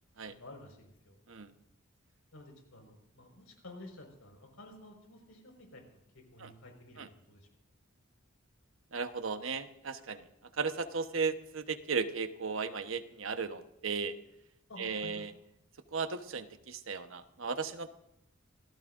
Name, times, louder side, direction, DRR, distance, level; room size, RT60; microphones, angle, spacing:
voice 1, 0.3-1.2 2.3-7.5 14.7-15.2, left 1 dB, 90° left, 3 dB, 5.0 m, -52 dB
voice 2, 8.9-10.2 10.6-14.1 14.8-15.3 15.9-18.0, right 5 dB, 70° right, 8 dB, 1.1 m, -35 dB
27.0 x 17.0 x 2.6 m, 0.83 s
head